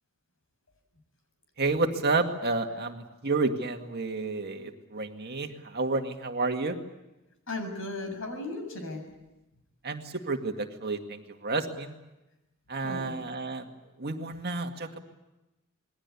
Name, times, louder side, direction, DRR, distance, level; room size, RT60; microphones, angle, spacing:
voice 1, 1.6-6.8 9.8-12.0 12.7-13.7 14.0-15.0, right 3 dB, 50° right, 4 dB, 2.1 m, -30 dB
voice 2, 7.5-9.1 12.8-13.1, left 2 dB, 65° left, 5 dB, 6.9 m, -36 dB
27.5 x 21.5 x 8.4 m, 1.0 s
head